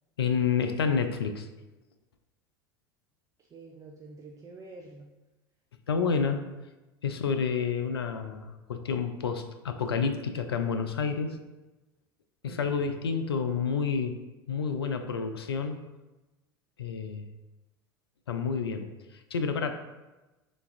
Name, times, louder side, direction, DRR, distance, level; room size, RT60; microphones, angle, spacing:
voice 1, 0.2-1.5 5.9-6.4 7.0-11.4 12.4-14.2 14.5-15.8 16.8-17.3 18.3-18.9 19.3-19.7, left 6 dB, 80° left, 7 dB, 0.4 m, -29 dB
voice 2, 3.5-5.1 12.4-12.9, right 3 dB, 25° right, 0 dB, 0.5 m, -46 dB
5.1 x 3.4 x 2.5 m, 1.1 s
figure-of-eight pair, 80°, 13 cm